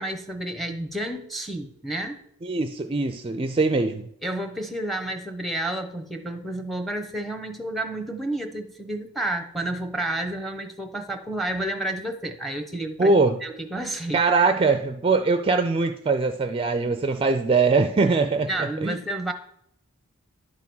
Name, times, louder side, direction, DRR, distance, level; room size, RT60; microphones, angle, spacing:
voice 1, 0.0-2.3 4.2-13.1 13.4-14.3 18.5-19.3, right 1 dB, ahead, 5 dB, 0.8 m, -30 dB
voice 2, 2.4-4.1 13.0-13.4 14.1-18.5 18.8-19.0, right 4 dB, 25° right, 7 dB, 0.4 m, -22 dB
11.0 x 3.6 x 6.1 m, 0.70 s
head